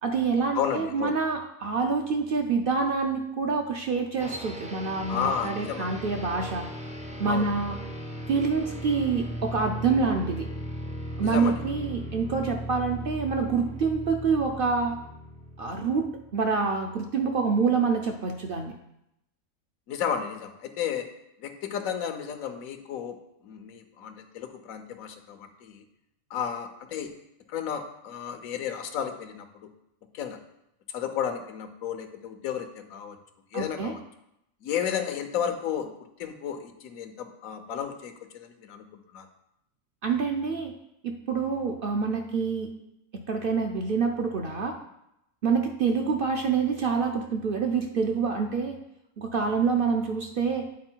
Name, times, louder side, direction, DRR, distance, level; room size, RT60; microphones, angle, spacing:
voice 1, 0.0-6.7 7.2-7.7 8.3-10.5 11.2-15.0 15.6-18.7 33.5-33.9 40.0-40.7 41.0-42.7 43.3-44.7 45.4-48.8 49.2-50.7, right 5 dB, 55° right, 3 dB, 0.6 m, -26 dB
voice 2, 0.5-1.2 5.1-5.9 7.3-7.4 11.2-11.6 19.9-21.1 21.4-25.8 26.3-27.1 27.5-29.7 30.1-30.4 30.9-33.2 33.5-34.0 34.6-35.9 36.2-38.8 39.1-39.3 49.4-49.6, left 8 dB, 80° left, 7 dB, 1.2 m, -33 dB
sound 1, 4.2-16.4, equal, 10° right, 0.3 m, -37 dB
8.6 x 4.0 x 4.4 m, 0.82 s
omnidirectional pair, 1.4 m